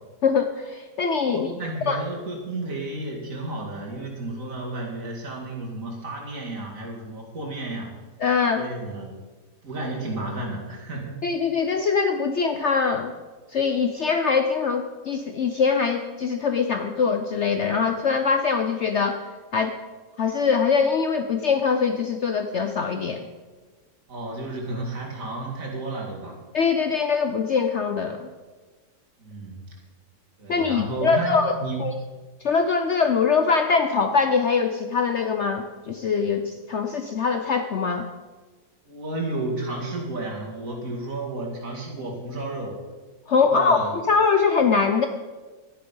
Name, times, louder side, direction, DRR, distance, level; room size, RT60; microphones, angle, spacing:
voice 1, 0.2-1.5 1.9-2.0 8.2-8.7 11.2-13.1 13.5-19.2 19.5-19.8 20.2-23.2 26.5-28.3 30.5-31.9 32.4-38.1 43.3-45.1, left 5 dB, 55° left, 6 dB, 0.8 m, -23 dB
voice 2, 1.2-7.9 8.5-9.1 9.6-11.2 24.1-26.4 29.2-29.6 30.4-31.9 38.8-42.8 43.4-43.9, right 2 dB, 55° right, -2 dB, 2.8 m, -32 dB
11.5 x 10.0 x 5.5 m, 1.3 s
omnidirectional pair, 1.8 m